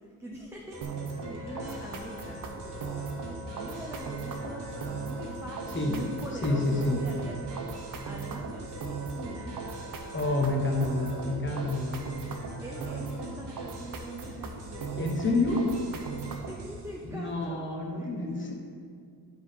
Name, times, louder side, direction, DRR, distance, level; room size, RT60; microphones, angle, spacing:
voice 1, 0.0-3.2 3.5-9.6 12.6-14.9 15.3-15.6 16.1-17.6 18.0-18.5, equal, 5° right, -3 dB, 0.6 m, -43 dB
sound 1, 0.7-17.0, equal, 90° right, 1.9 m, -43 dB
sound 2, 0.8-16.7, right 5 dB, 55° right, 0.8 m, -38 dB
Wind instrument woodwind instrument, 1.1-11.4, right 2 dB, 45° left, 1.4 m, -46 dB
voice 2, 6.4-7.0 10.1-12.0 15.0-15.6 17.1-18.5, left 2 dB, 30° left, -1 dB, 1.3 m, -28 dB
10.5 x 5.5 x 3.7 m, 2.2 s
wide cardioid pair, 150°, 41 cm